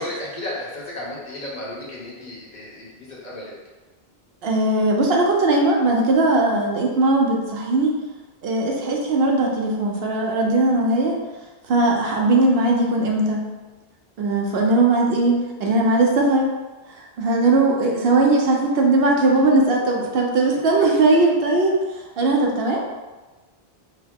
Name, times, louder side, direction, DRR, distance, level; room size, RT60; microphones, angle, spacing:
voice 1, 0.0-3.5, left 1 dB, 50° left, -5 dB, 1.0 m, -33 dB
voice 2, 4.4-8.0 8.4-11.2 11.7-13.4 14.2-16.5 17.0-22.8, right 2 dB, 75° right, 0 dB, 0.9 m, -19 dB
4.5 x 2.0 x 3.5 m, 1.2 s
omnidirectional pair, 1.1 m